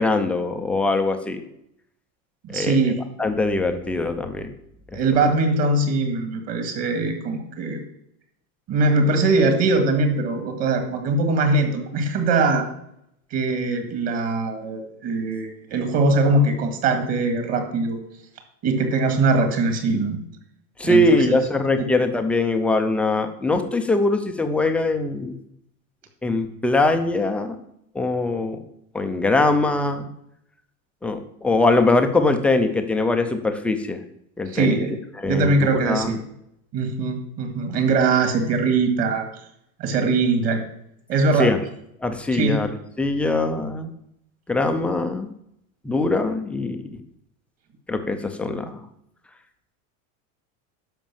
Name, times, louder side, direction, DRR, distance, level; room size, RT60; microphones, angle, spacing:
voice 1, 0.0-1.4 2.5-2.8 3.2-4.5 20.8-25.4 26.2-27.6 27.9-28.6 28.9-30.1 31.0-34.0 34.4-34.8 35.2-36.1 41.4-41.6 42.0-43.9 44.5-45.3 45.8-46.8 47.9-48.8, left 2 dB, 5° left, 6 dB, 0.3 m, -22 dB
voice 2, 2.4-3.0 4.9-7.8 8.7-12.6 13.3-18.0 18.6-20.2 20.8-21.4 21.8-21.9 34.4-34.9 35.3-36.2 36.7-39.3 39.8-40.6 41.1-41.5 42.3-42.6, right 3 dB, 40° right, 5 dB, 2.0 m, -21 dB
11.5 x 5.1 x 7.3 m, 0.75 s
supercardioid pair, 165°, 40 cm